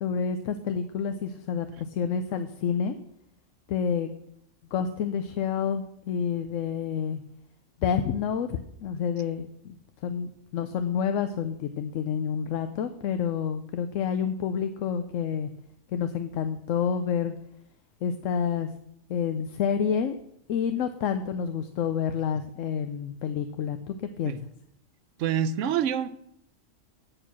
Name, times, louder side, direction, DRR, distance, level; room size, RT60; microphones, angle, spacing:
voice 1, 0.0-2.9 3.7-4.1 4.7-7.2 7.8-9.7 10.0-15.5 15.9-17.3 18.0-18.7 19.1-20.2 20.5-24.4, left 7 dB, 85° left, 9 dB, 1.0 m, -29 dB
voice 2, 25.2-26.1, right 8 dB, 75° right, 13 dB, 0.9 m, -26 dB
8.8 x 6.8 x 6.0 m, 0.75 s
omnidirectional pair, 1.3 m